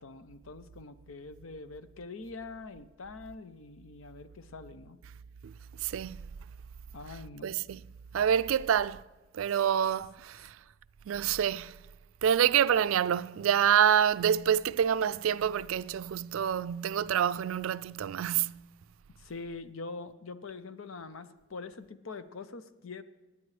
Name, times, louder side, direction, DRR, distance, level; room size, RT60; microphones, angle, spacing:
voice 1, 0.0-5.0 6.9-7.5 19.2-23.0, left 3 dB, 80° left, 0.7 m, -44 dB
voice 2, 5.8-6.2 7.4-7.8 8.1-9.0 9.3-10.6 11.1-11.7 12.2-18.6, right 9 dB, 80° right, 0.3 m, -27 dB
27.0 x 9.7 x 3.3 m
head